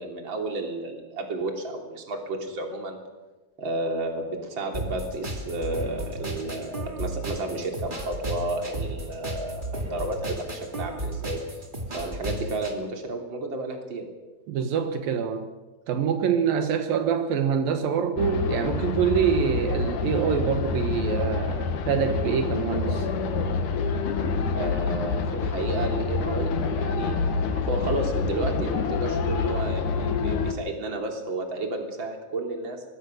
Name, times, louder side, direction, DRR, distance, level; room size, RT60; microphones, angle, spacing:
voice 1, 0.0-3.0 3.6-11.4 11.9-14.0 24.5-32.8, right 2 dB, 35° right, 3 dB, 3.6 m, -32 dB
sound 1, 4.7-12.7, right 1 dB, 15° right, 2.2 m, -34 dB
voice 2, 14.5-15.5 15.9-23.1, right 7 dB, 80° right, 7 dB, 3.1 m, -25 dB
sound 2, 18.2-30.5, left 4 dB, 65° left, 2.8 m, -27 dB
24.5 x 20.0 x 6.4 m, 1.2 s
omnidirectional pair, 4.1 m